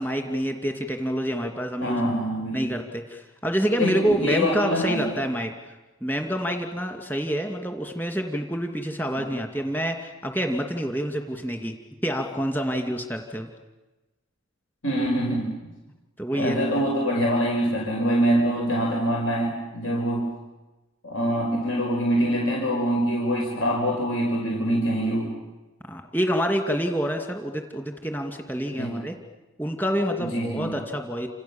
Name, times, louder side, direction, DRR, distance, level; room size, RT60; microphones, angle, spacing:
voice 1, 0.0-2.0 2.5-5.7 6.0-11.7 12.0-13.5 16.2-16.6 25.9-29.1 29.6-31.3, equal, 10° left, 3 dB, 2.5 m, -27 dB
voice 2, 1.8-2.6 3.8-5.1 14.8-15.5 16.3-20.2 21.0-25.3 28.8-29.0 30.2-30.7, equal, 70° left, 0 dB, 5.8 m, -24 dB
29.5 x 28.0 x 7.2 m, 1.1 s
head